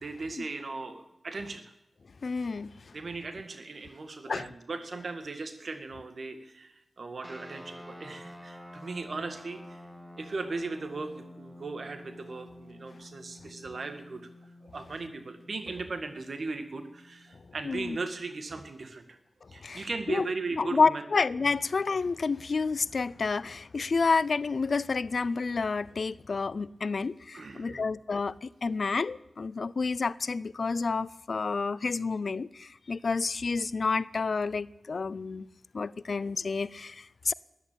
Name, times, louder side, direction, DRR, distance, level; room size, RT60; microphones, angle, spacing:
voice 1, 0.0-1.7 2.9-9.8 10.2-14.3 14.6-19.2 19.5-21.0 21.4-21.6 27.3-27.9, right 3 dB, 70° right, 1.8 m, -38 dB
voice 2, 2.2-2.7 4.3-4.4 17.7-18.0 19.6-20.3 20.6-35.5 35.7-37.3, left 4 dB, 70° left, 0.5 m, -29 dB
sound 1, 7.2-17.9, left 1 dB, 5° right, 2.1 m, -50 dB
13.5 x 11.0 x 9.0 m
cardioid pair, 40°, 0 cm